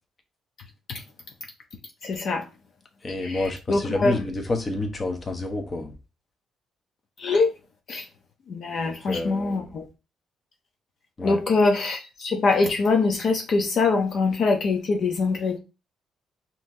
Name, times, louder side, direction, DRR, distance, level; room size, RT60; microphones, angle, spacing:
voice 1, 2.0-2.4 3.2-4.2 7.2-7.5 7.9-8.0 8.5-9.8 11.2-15.6, left 3 dB, 55° left, 0.7 m, -23 dB
voice 2, 3.0-6.0 8.8-9.7 11.2-11.4, left 2 dB, 30° left, 1.0 m, -29 dB
5.5 x 3.0 x 2.7 m
cardioid pair, 110°, 0 cm